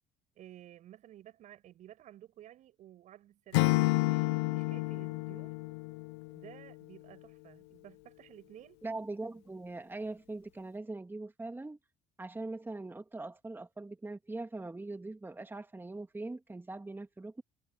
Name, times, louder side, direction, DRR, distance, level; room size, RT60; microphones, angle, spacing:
voice 1, 0.4-5.6 6.3-8.8, right 12 dB, 65° right, 7.5 m, -54 dB
Acoustic guitar / Strum, 3.5-6.6, left 24 dB, 85° left, 0.6 m, -30 dB
voice 2, 8.8-11.8 12.2-17.4, right 2 dB, 15° right, 2.1 m, -41 dB
hypercardioid pair, 65°, 14 cm